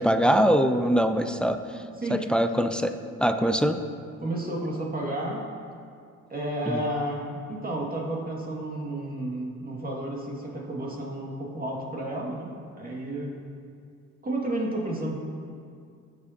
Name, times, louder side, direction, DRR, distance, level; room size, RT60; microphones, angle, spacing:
voice 1, 0.0-1.6 2.1-2.9 3.2-3.8 6.7-6.8, equal, 5° left, 8 dB, 0.5 m, -22 dB
voice 2, 2.0-2.3 4.2-5.5 6.3-13.4 14.2-15.1, right 1 dB, 30° right, -2 dB, 2.1 m, -31 dB
18.5 x 6.9 x 2.9 m, 2.3 s
cardioid pair, 90°, 30 cm